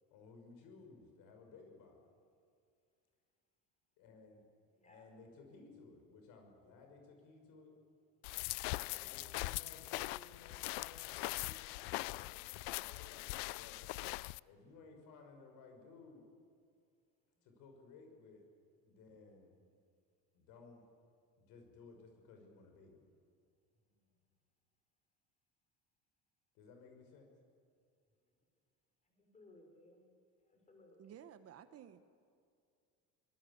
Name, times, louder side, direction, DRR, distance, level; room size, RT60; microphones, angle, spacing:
voice 1, 0.1-2.0 4.0-4.5 4.8-7.8 8.6-13.8 14.4-16.3 17.4-18.4 18.8-19.6 20.3-20.9 21.4-23.1 26.5-27.3, left 4 dB, 75° left, 4 dB, 6.0 m, -58 dB
voice 2, 4.7-5.1 23.9-24.1 29.0-30.1 30.4-31.3, left 2 dB, 20° left, 3 dB, 5.5 m, -63 dB
sound 1, 8.2-14.4, left 23 dB, 90° left, 0.5 m, -41 dB
voice 3, 31.0-32.0, right 9 dB, 45° right, 11 dB, 1.2 m, -54 dB
24.5 x 19.0 x 8.6 m, 2.3 s
cardioid pair, 130°, 33 cm